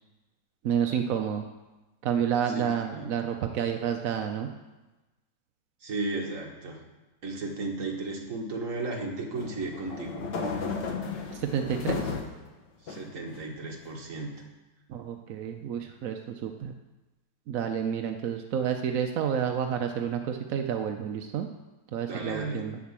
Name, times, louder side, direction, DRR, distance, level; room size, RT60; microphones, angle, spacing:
voice 1, 0.6-1.4 2.0-4.5 11.3-12.1 14.9-16.7 17.5-21.5 21.9-22.8, right 8 dB, 65° right, 4 dB, 0.9 m, -30 dB
voice 2, 2.5-3.1 5.8-6.8 7.2-10.2 12.8-14.3 22.1-22.6, right 2 dB, 45° right, 0 dB, 1.9 m, -34 dB
sound 1, 9.3-12.4 12.9-13.7, left 4 dB, 70° left, 1.8 m, -34 dB
9.3 x 7.4 x 7.4 m, 1.1 s
omnidirectional pair, 2.0 m